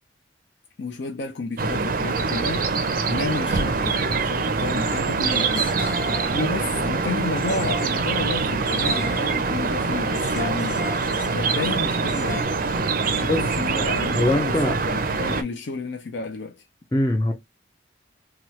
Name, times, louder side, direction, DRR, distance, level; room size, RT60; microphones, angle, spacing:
voice 1, 0.8-2.7 3.1-5.7 6.3-10.8 11.3-12.5 13.1-16.7, left 3 dB, 70° left, 0.5 m, -31 dB
sound 1, 1.6-15.4, right 4 dB, 50° right, 0.5 m, -24 dB
sound 2, 5.2-6.5 7.4-9.5 10.1-12.4, left 4 dB, 45° left, 1.2 m, -37 dB
voice 2, 14.1-14.8 16.9-17.3, left 1 dB, 20° left, 0.4 m, -22 dB
2.9 x 2.3 x 3.0 m
head